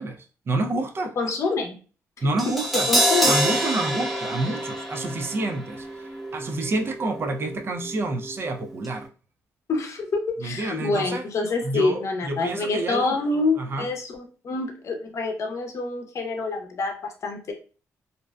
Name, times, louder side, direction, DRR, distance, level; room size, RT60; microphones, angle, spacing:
voice 1, 0.0-1.2 2.2-2.9 3.2-9.1 10.4-11.2 11.6-13.2 13.6-13.9, right 2 dB, 40° right, 0.4 m, -28 dB
voice 2, 1.2-1.8 2.2-2.3 2.9-3.4 9.7-17.5, left 3 dB, 55° left, 0.6 m, -27 dB
Crash cymbal, 2.4-8.5 8.8-8.9, equal, ahead, 0.7 m, -27 dB
2.5 x 2.1 x 2.3 m
cardioid pair, 95°, 6 cm